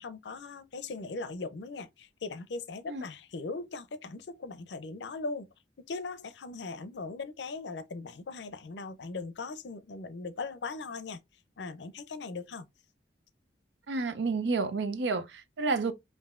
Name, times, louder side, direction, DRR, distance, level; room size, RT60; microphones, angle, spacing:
voice 1, 0.0-5.5 5.9-11.2 11.6-12.7, left 3 dB, 75° left, 0.5 m, -39 dB
voice 2, 13.9-15.9, right 3 dB, 85° right, 0.6 m, -30 dB
5.4 x 2.6 x 2.4 m
head